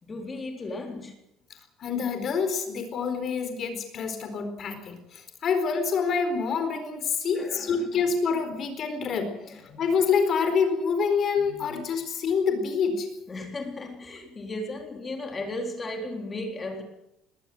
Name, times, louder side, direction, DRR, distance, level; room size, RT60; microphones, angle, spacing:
voice 1, 0.0-1.2 7.3-8.0 9.5-9.8 11.4-11.8 13.3-16.8, left 2 dB, 15° left, 3.8 m, -36 dB
voice 2, 1.8-13.1, left 5 dB, 35° left, 4.3 m, -27 dB
20.5 x 19.0 x 8.0 m
cardioid pair, 175°, 0 cm